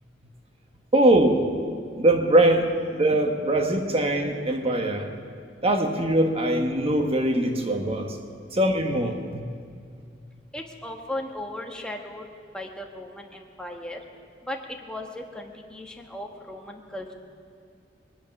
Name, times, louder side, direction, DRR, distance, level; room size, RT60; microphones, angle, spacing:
voice 1, 0.9-1.5 1.9-5.1 5.6-8.2 8.5-9.4, right 1 dB, 35° right, 4 dB, 1.4 m, -22 dB
voice 2, 10.5-12.2 12.5-14.0 14.5-14.6 14.9-17.1, left 1 dB, 5° left, 1 dB, 1.4 m, -36 dB
20.5 x 11.0 x 6.0 m, 2.3 s
head